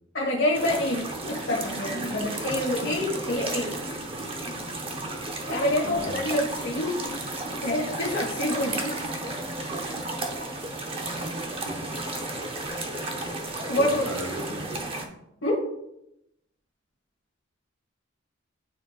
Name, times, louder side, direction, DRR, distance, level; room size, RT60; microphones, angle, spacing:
voice 1, 0.1-3.7 5.5-6.9 7.6-8.9 13.7-14.0 15.4-15.6, left 1 dB, 70° left, -4 dB, 1.4 m, -27 dB
sound 1, 0.5-15.1, right 2 dB, 25° right, 0.7 m, -33 dB
voice 2, 5.8-6.2 11.6-11.9 13.7-14.8, right 1 dB, 85° right, 4 dB, 1.1 m, -36 dB
10.5 x 4.4 x 2.4 m, 0.82 s
head